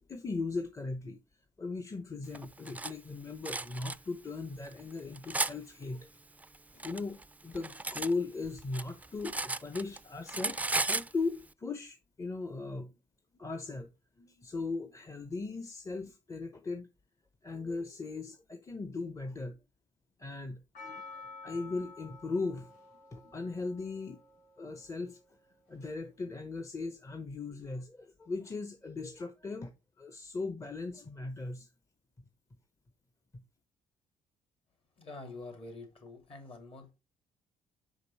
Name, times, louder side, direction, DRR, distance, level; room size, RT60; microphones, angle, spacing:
voice 1, 0.1-1.2 1.6-6.1 6.7-10.6 10.9-13.0 13.3-13.9 14.2-16.9 17.4-19.6 20.2-22.7 23.1-24.2 24.6-25.2 25.7-29.7 30.0-31.7, left 3 dB, 25° left, 0.8 m, -38 dB
Cutlery silverware, 2.3-2.9 3.4-4.0 4.7-5.5 6.4-8.1 8.4-10.0 10.3-11.1, right 2 dB, 10° right, 0.4 m, -34 dB
Percussion, 20.7-25.1 25.7-25.8, left 4 dB, 85° left, 3.7 m, -50 dB
voice 2, 35.0-36.9, left 3 dB, 45° left, 2.8 m, -46 dB
5.4 x 5.2 x 4.0 m
cardioid pair, 85°, 13 cm